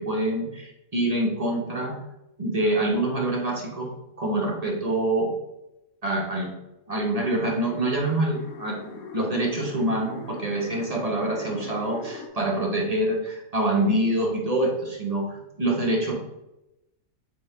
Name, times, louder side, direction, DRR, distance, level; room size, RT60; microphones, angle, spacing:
voice 1, 0.0-2.0 2.4-5.3 6.0-6.5 6.9-16.2, right 1 dB, 35° right, -2 dB, 0.8 m, -26 dB
sound 1, 7.2-12.3, left 5 dB, 85° left, 1.1 m, -41 dB
3.8 x 3.1 x 4.3 m, 0.93 s
omnidirectional pair, 1.5 m